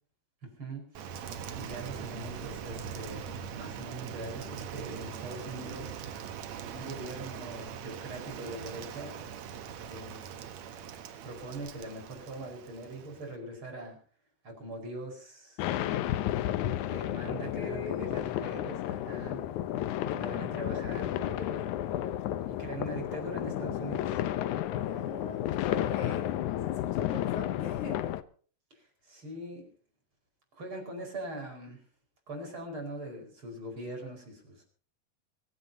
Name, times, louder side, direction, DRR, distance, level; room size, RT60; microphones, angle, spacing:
voice 1, 0.4-1.1 1.5-6.2 6.7-9.2 9.8-10.2 11.2-14.0 14.4-15.7 16.8-19.4 20.1-22.1 22.4-24.2 28.7-29.7 30.5-31.8 32.3-34.6, right 1 dB, 30° right, 2 dB, 5.5 m, -42 dB
Rain, 0.9-13.4, right 7 dB, 60° right, 2.0 m, -41 dB
sound 1, 15.6-28.2, left 12 dB, 90° left, 1.7 m, -32 dB
voice 2, 17.2-18.2 24.7-28.0, left 5 dB, 55° left, 3 dB, 3.2 m, -42 dB
25.0 x 15.5 x 2.8 m, 0.43 s
omnidirectional pair, 4.6 m